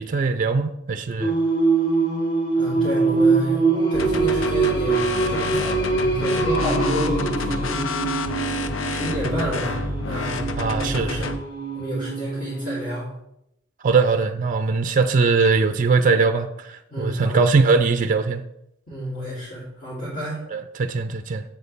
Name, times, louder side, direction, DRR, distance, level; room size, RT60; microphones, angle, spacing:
voice 1, 0.0-1.3 10.6-11.3 13.8-18.4 20.5-21.4, right 4 dB, 40° right, 9 dB, 0.4 m, -21 dB
Singing, 1.2-12.9, right 3 dB, 25° left, 1.5 m, -24 dB
voice 2, 2.5-3.6 3.9-7.8 8.8-11.3 11.7-13.1 16.9-17.4 18.9-20.4, equal, 40° left, -10 dB, 3.1 m, -30 dB
sound 1, 3.9-11.4, left 3 dB, 85° left, 0.7 m, -29 dB
8.1 x 8.1 x 3.5 m, 0.82 s
head